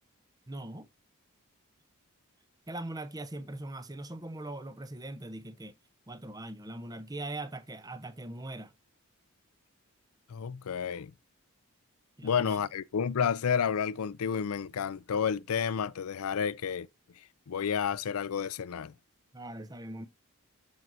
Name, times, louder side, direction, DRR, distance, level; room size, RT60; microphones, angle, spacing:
voice 1, 0.5-0.9 2.7-5.7 6.1-8.7 12.2-12.6 19.3-20.1, right 1 dB, 15° right, 0.7 m, -41 dB
voice 2, 10.3-11.1 12.2-16.9 17.5-18.9, left 7 dB, 80° left, 0.4 m, -30 dB
13.5 x 4.7 x 2.6 m
head